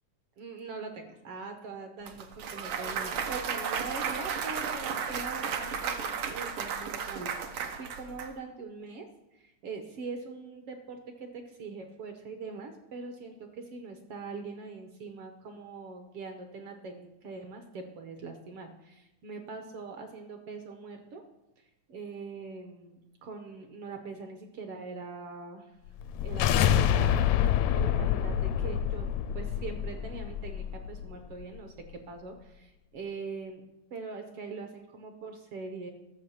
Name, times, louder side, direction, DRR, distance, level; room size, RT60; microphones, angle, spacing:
voice 1, 0.4-21.2 21.6-25.7 26.2-27.5 27.7-29.1 29.3-33.6 33.9-35.9, right 4 dB, 65° right, 6 dB, 1.5 m, -42 dB
Clapping / Cheering / Applause, 2.1-8.3, right 6 dB, 80° right, 1.1 m, -34 dB
sound 1, 26.0-31.1, left 10 dB, 80° left, 1.7 m, -27 dB
13.0 x 6.3 x 7.1 m, 0.96 s
omnidirectional pair, 3.5 m